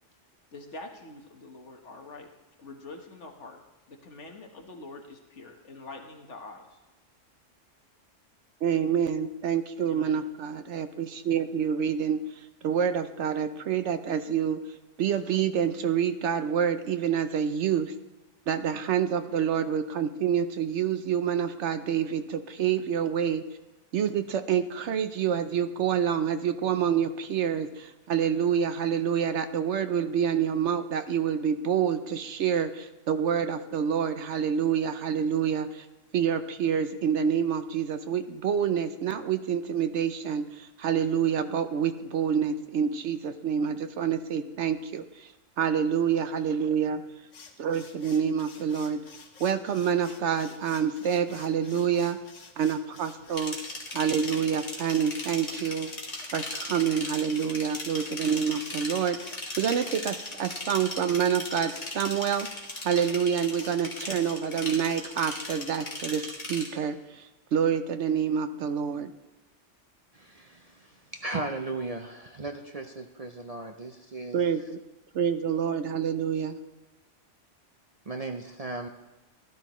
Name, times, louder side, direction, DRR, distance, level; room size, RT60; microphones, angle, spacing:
voice 1, 0.5-2.3 2.6-3.6 3.9-6.8 9.9-10.2, left 2 dB, 70° left, 3 dB, 1.6 m, -45 dB
voice 2, 8.6-12.2 12.6-14.6 15.0-17.9 18.5-23.4 23.9-35.9 36.1-45.3 45.6-47.0 47.6-49.0 49.4-52.2 52.6-53.6 53.9-55.9 56.3-69.1 74.3-74.6 75.1-76.6, right 8 dB, 70° right, 10 dB, 1.0 m, -27 dB
sound 1, 47.3-65.6, left 4 dB, 85° left, 1.4 m, -50 dB
sound 2, 53.4-66.7, left 2 dB, 40° left, 1.8 m, -38 dB
voice 3, 70.1-74.4 78.1-78.9, right 3 dB, 40° right, 4 dB, 0.6 m, -36 dB
16.0 x 12.0 x 3.1 m, 1.1 s
omnidirectional pair, 1.3 m